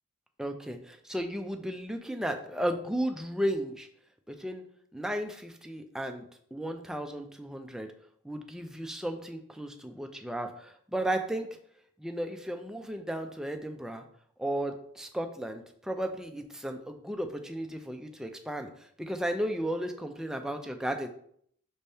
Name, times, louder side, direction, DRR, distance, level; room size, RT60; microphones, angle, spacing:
voice 1, 0.4-3.9 4.3-4.6 4.9-6.2 6.5-7.9 8.2-11.5 12.0-14.0 14.4-21.1, right 1 dB, 5° right, 5 dB, 0.3 m, -34 dB
5.3 x 3.4 x 2.7 m, 0.65 s
head